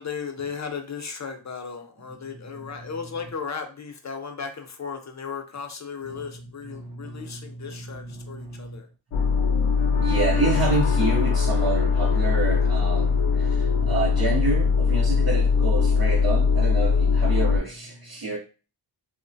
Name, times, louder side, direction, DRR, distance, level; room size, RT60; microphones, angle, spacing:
voice 1, 0.0-8.9, left 6 dB, 35° left, 0.5 m, -35 dB
voice 2, 6.7-8.8 9.4-18.4, right 3 dB, 45° right, 0.6 m, -29 dB
sound 1, 9.1-17.6, left 5 dB, 85° left, 0.7 m, -21 dB
3.0 x 2.1 x 2.6 m
cardioid pair, 70°, 49 cm